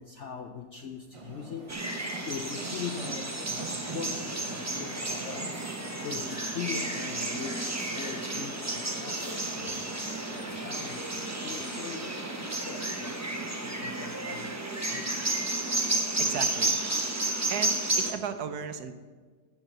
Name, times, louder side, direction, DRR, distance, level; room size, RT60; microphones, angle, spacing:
voice 1, 0.0-1.7 2.3-5.5 6.0-9.8 10.3-11.1 11.4-12.3 12.6-15.3, left 6 dB, 65° left, 5 dB, 0.7 m, -41 dB
sound 1, 1.1-13.5, right 3 dB, 50° right, 0.4 m, -44 dB
sound 2, 1.7-18.1, right 2 dB, 15° right, 0.7 m, -32 dB
voice 2, 16.2-16.8 17.5-18.9, right 7 dB, 65° right, 9 dB, 1.2 m, -35 dB
13.0 x 4.8 x 7.8 m, 1.5 s
omnidirectional pair, 1.9 m